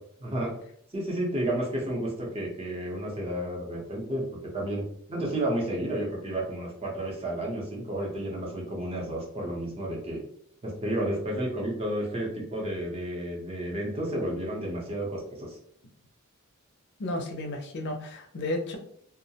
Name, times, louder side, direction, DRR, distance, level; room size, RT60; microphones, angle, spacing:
voice 1, 0.2-0.5 0.9-10.2 10.6-15.6, right 1 dB, 25° right, -2 dB, 0.7 m, -31 dB
voice 2, 17.0-18.8, left 1 dB, 55° left, 4 dB, 0.5 m, -32 dB
2.3 x 2.0 x 2.7 m, 0.65 s
head